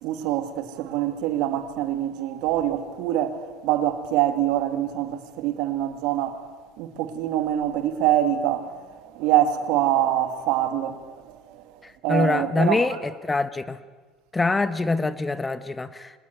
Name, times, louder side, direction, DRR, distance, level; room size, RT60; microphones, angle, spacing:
voice 1, 0.0-3.4 3.6-6.4 6.8-8.7 9.0-11.0 12.0-12.8, right 12 dB, 75° right, 2.4 m, -24 dB
voice 2, 11.8-13.8 14.3-16.2, left 3 dB, 15° left, 1.2 m, -25 dB
25.0 x 19.0 x 9.6 m
cardioid pair, 130°, 0 cm